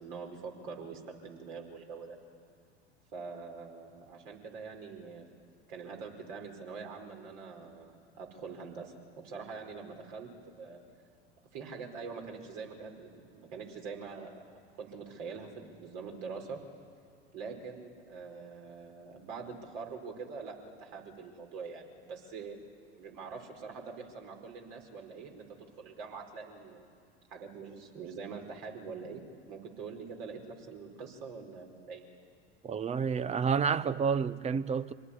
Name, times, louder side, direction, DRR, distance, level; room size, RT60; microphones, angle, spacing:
voice 1, 0.0-2.2 3.1-5.3 5.7-10.3 10.6-10.8 11.5-14.4 14.7-16.6 17.3-22.6 22.9-26.9 27.3-29.2 29.5-32.0, right 5 dB, 55° right, 5.0 m, -44 dB
voice 2, 32.6-34.9, right 6 dB, 20° right, 0.8 m, -29 dB
26.0 x 18.5 x 9.9 m
figure-of-eight pair, 80°, 34 cm